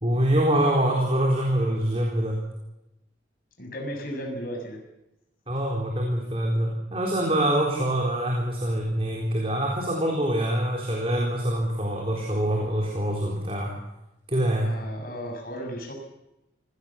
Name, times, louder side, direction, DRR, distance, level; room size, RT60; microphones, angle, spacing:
voice 1, 0.0-2.4 5.5-13.7 14.3-14.7, right 1 dB, 30° right, -1 dB, 3.9 m, -25 dB
voice 2, 3.6-4.8 14.6-15.9, equal, 50° left, 1 dB, 6.8 m, -35 dB
25.0 x 18.5 x 7.2 m, 0.93 s
head